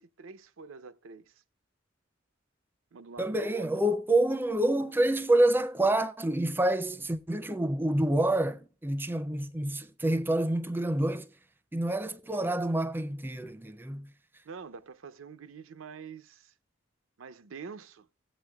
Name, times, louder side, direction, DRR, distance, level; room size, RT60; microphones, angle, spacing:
voice 1, 0.0-1.4 2.9-3.7 14.4-16.5 17.2-18.1, right 5 dB, 90° right, 0.6 m, -46 dB
voice 2, 3.2-11.3 11.7-14.1, right 1 dB, 10° right, 0.4 m, -27 dB
16.0 x 8.2 x 2.3 m
head